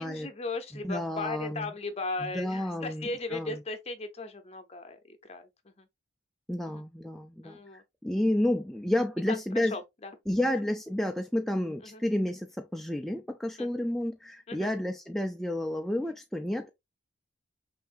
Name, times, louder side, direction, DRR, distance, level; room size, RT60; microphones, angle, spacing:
voice 1, 0.0-5.9 6.7-6.8 7.4-7.8 9.3-9.4 9.7-10.1 10.4-10.6 11.8-12.0 13.6-13.7 14.5-14.7, left 3 dB, 35° left, 0.7 m, -37 dB
voice 2, 0.8-1.7 2.2-3.6 6.5-9.8 10.3-16.7, left 1 dB, ahead, 0.3 m, -31 dB
5.7 x 2.6 x 2.5 m
head